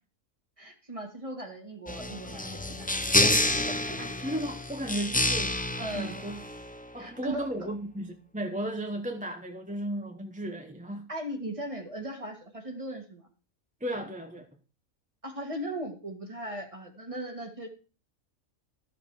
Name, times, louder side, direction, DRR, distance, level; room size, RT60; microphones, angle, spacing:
voice 1, 0.6-2.9 3.2-4.0 5.8-6.2 7.0-7.5 11.1-13.3 15.2-17.7, right 1 dB, 25° right, 2.0 m, -38 dB
sound 1, 1.9-6.9, left 1 dB, 10° left, 0.4 m, -28 dB
voice 2, 4.0-6.4 6.9-11.1 13.8-14.5, right 1 dB, 5° right, 0.8 m, -35 dB
13.0 x 7.1 x 4.8 m
omnidirectional pair, 1.4 m